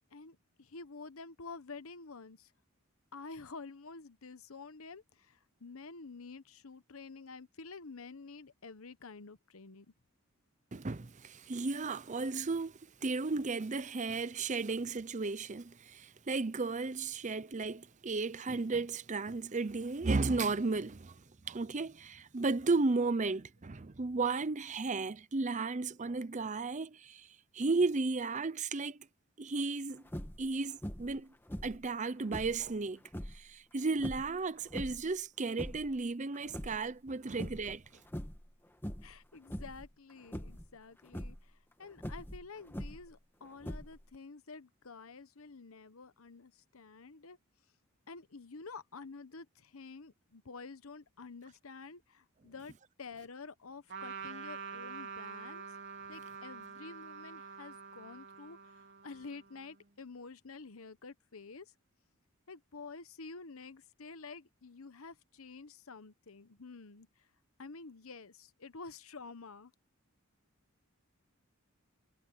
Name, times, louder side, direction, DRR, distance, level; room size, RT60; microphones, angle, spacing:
voice 1, 0.1-2.5 3.1-9.9 39.0-47.4 48.1-52.7 53.0-55.8 56.1-61.7 62.5-67.3 67.6-69.7, left 4 dB, 80° left, 1.0 m, -49 dB
voice 2, 10.7-27.3 27.5-29.1 29.4-30.0 30.4-31.3 31.6-33.0 33.3-37.8, right 3 dB, 35° right, 0.7 m, -34 dB
sound 1, 30.1-30.5 30.8-31.2 31.5-32.6 33.1-33.4 34.0-35.1 35.4-36.0 36.3-37.1 37.4-37.8 38.1-38.5 38.8-39.2 39.5-39.9 40.3-40.7 41.1-41.4 42.0-43.1 43.6-44.2, equal, 10° left, 1.6 m, -42 dB
Trumpet, 53.9-59.8, right 5 dB, 55° right, 3.4 m, -46 dB
head